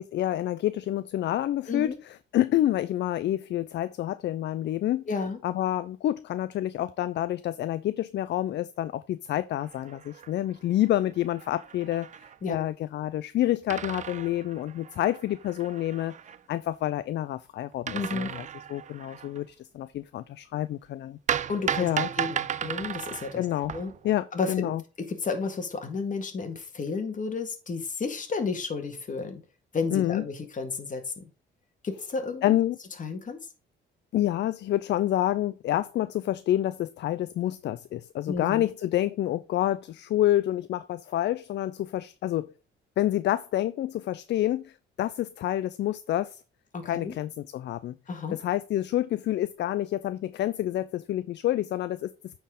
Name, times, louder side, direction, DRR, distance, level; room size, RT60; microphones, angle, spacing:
voice 1, 0.0-5.1 5.4-12.1 12.5-16.1 16.5-21.2 21.8-22.1 23.4-23.7 24.0-24.8 29.9-30.2 32.4-32.8 34.1-42.5 43.0-46.4 46.8-48.0 48.3-52.4, left 13 dB, 60° left, 0.4 m, -28 dB
voice 2, 5.1-5.4 12.4-12.7 17.9-18.3 21.5-23.4 23.7-23.9 24.3-24.7 25.1-29.4 29.7-31.2 31.8-32.5 33.0-33.4 38.3-38.6 46.7-47.1 48.1-48.4, left 4 dB, 40° left, 1.8 m, -32 dB
sound 1, 9.6-10.6 10.9-11.0 11.2-12.4 13.7-16.4 17.9-19.4 21.3-24.1, right 9 dB, 40° right, 0.4 m, -35 dB
9.0 x 4.4 x 3.7 m
cardioid pair, 90°, 20 cm